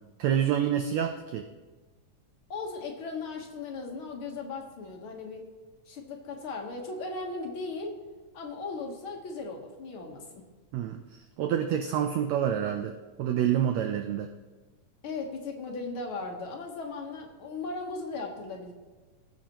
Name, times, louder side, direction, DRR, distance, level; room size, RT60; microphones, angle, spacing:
voice 1, 0.2-1.5 10.7-11.0 11.4-14.3, right 9 dB, 85° right, 6 dB, 1.5 m, -27 dB
voice 2, 2.5-5.4 5.9-8.0 8.3-10.4 15.0-18.7, left 3 dB, 60° left, 1 dB, 1.5 m, -37 dB
18.5 x 7.3 x 2.9 m, 1.3 s
omnidirectional pair, 3.7 m